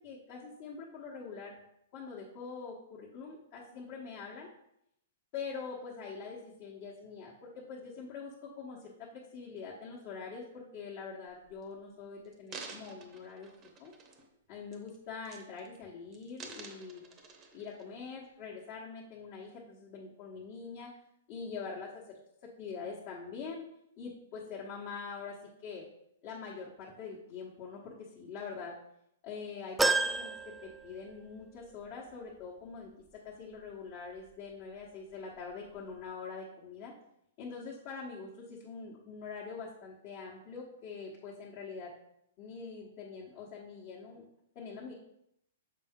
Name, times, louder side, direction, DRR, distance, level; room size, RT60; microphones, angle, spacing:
voice 1, 0.0-1.5 1.9-4.5 5.3-13.5 13.8-13.9 14.5-17.0 17.5-21.0 21.3-23.6 24.0-25.8 26.2-28.7 29.2-32.9 33.2-36.9 37.4-41.9 42.4-44.2 44.5-44.9, left 5 dB, 40° left, -5 dB, 1.3 m, -44 dB
sound 1, 11.3-11.6 12.2-14.4 14.7-15.0 15.3-15.8 16.1-17.8 18.4-18.5, right 4 dB, 25° right, 0.8 m, -49 dB
sound 2, 29.8-31.4 31.9-32.0 33.2-33.3, right 3 dB, 5° right, 0.3 m, -31 dB
6.6 x 4.5 x 3.7 m, 0.77 s
hypercardioid pair, 140°, 0 cm